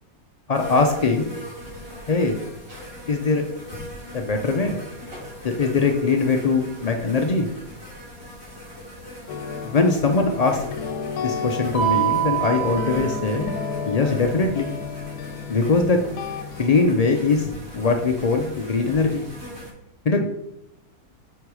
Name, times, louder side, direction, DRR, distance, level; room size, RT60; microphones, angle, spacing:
voice 1, 0.5-1.3 2.1-2.4 3.1-3.4 4.1-4.7 5.4-7.5 9.6-10.6 11.2-13.5 13.8-14.7 15.5-16.0 16.6-17.5 17.7-19.3 20.0-20.3, left 4 dB, 65° left, 3 dB, 0.3 m, -21 dB
sound 1, 0.5-19.7, left 1 dB, 40° right, 3.5 m, -40 dB
sound 2, 9.3-16.9, left 5 dB, 85° left, 1.1 m, -32 dB
Mallet percussion, 11.7-13.8, right 14 dB, 45° left, 1.2 m, -26 dB
7.9 x 4.6 x 4.8 m, 0.85 s
omnidirectional pair, 1.7 m